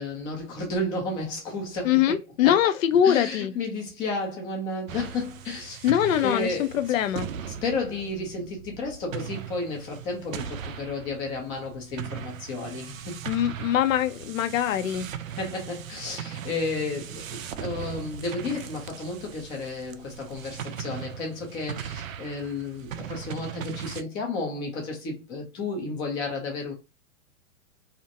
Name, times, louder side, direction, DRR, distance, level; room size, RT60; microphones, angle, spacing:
voice 1, 0.0-2.6 3.0-5.9 6.2-6.7 7.6-13.3 15.4-26.7, left 3 dB, 10° left, 0.3 m, -32 dB
voice 2, 1.8-3.5 5.8-7.3 13.3-15.1, left 10 dB, 75° left, 0.5 m, -23 dB
sound 1, 4.9-24.0, right 9 dB, 85° right, 0.5 m, -39 dB
2.5 x 2.1 x 2.7 m
hypercardioid pair, 130°, 40 cm